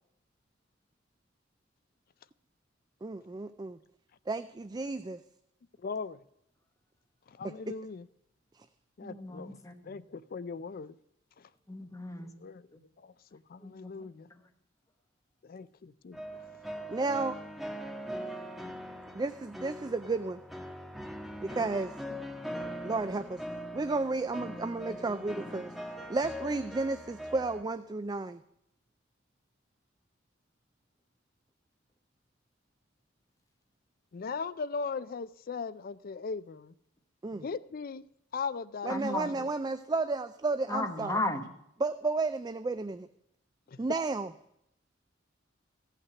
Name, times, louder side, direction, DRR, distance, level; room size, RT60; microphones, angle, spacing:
voice 1, 3.0-3.8 4.3-5.2 7.4-7.7 16.9-17.4 19.1-20.4 21.4-21.9 22.8-23.4 23.7-25.7 26.1-28.4 37.2-37.4 38.8-41.2 41.8-43.1 43.8-44.3, right 3 dB, 20° right, 11 dB, 0.4 m, -32 dB
voice 2, 5.8-6.2 7.3-8.1 9.0-9.6 9.8-11.0 11.4-11.5 12.4-12.7 13.0-14.3 15.4-16.2 21.5-21.7 34.1-36.7 37.3-38.0 38.3-39.5 43.7-43.8, left 5 dB, 50° left, 16 dB, 0.4 m, -39 dB
voice 3, 9.0-9.9 11.7-12.3 13.6-13.9 38.9-39.3 40.7-41.5, left 1 dB, 15° left, 5 dB, 1.2 m, -35 dB
sound 1, 16.1-27.6, equal, ahead, 1.4 m, -41 dB
15.5 x 5.8 x 8.2 m, 0.80 s
head